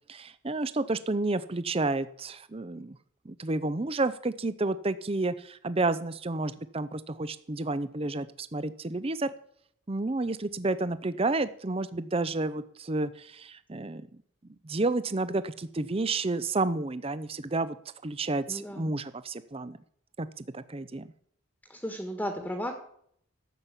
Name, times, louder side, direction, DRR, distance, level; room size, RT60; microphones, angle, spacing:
voice 1, 0.1-3.0 3.2-9.3 9.9-14.0 14.6-17.8 18.0-19.8 20.2-21.1, right 2 dB, 30° right, 14 dB, 0.6 m, -30 dB
voice 2, 18.5-18.9 21.7-22.7, equal, 5° left, 4 dB, 1.5 m, -34 dB
13.0 x 7.4 x 8.3 m, 0.65 s
head